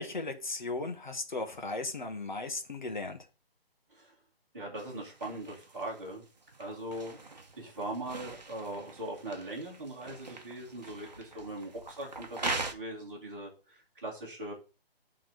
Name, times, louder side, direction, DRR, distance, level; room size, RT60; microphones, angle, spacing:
voice 1, 0.0-3.2, left 3 dB, 50° left, 1.3 m, -36 dB
voice 2, 4.5-6.2 6.6-7.2 7.6-14.5, right 1 dB, 20° right, 1.6 m, -40 dB
sound 1, 4.7-12.7, right 3 dB, 45° right, 1.0 m, -42 dB
7.6 x 3.7 x 6.2 m
hypercardioid pair, 180°, 31 cm